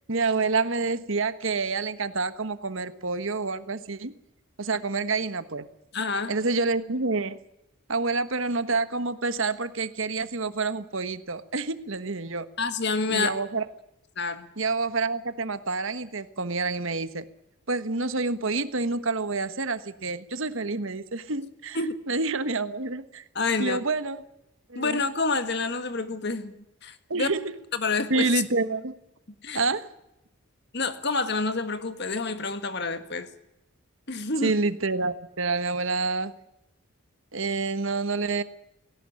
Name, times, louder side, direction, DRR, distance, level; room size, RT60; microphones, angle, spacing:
voice 1, 0.1-4.1 4.6-5.7 6.3-7.4 7.9-12.5 13.1-13.6 14.6-17.3 17.7-21.8 22.1-23.2 23.6-24.2 24.7-25.0 27.1-27.5 28.1-28.9 29.5-29.9 34.4-36.3 37.3-38.4, right 3 dB, 65° right, 12 dB, 1.3 m, -28 dB
voice 2, 5.9-6.3 12.6-13.3 14.2-14.5 21.7-21.9 23.3-23.8 24.7-26.5 26.8-27.3 27.7-28.4 29.4-29.6 30.7-33.3 34.1-34.5, left 3 dB, 50° left, 10 dB, 1.6 m, -28 dB
18.0 x 17.5 x 9.9 m, 0.87 s
head